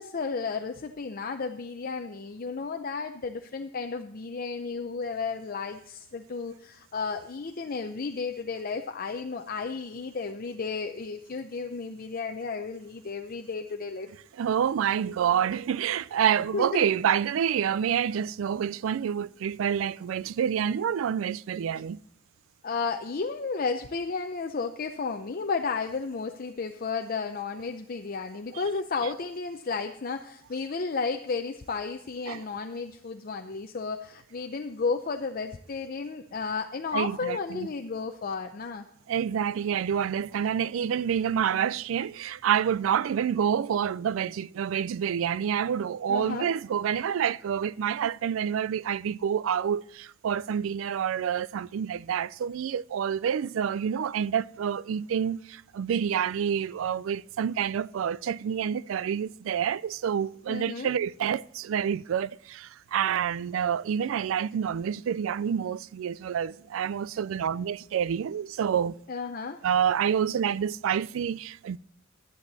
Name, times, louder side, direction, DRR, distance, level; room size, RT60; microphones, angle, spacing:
voice 1, 0.0-14.1 16.3-16.9 22.6-38.9 46.1-46.5 60.5-61.0 69.1-69.6, left 4 dB, 45° left, 0.6 m, -33 dB
voice 2, 14.4-22.0 28.5-28.6 32.3-32.4 36.9-37.7 39.1-69.0 69.6-71.8, right 8 dB, 80° right, 0.3 m, -28 dB
12.5 x 10.5 x 4.1 m
head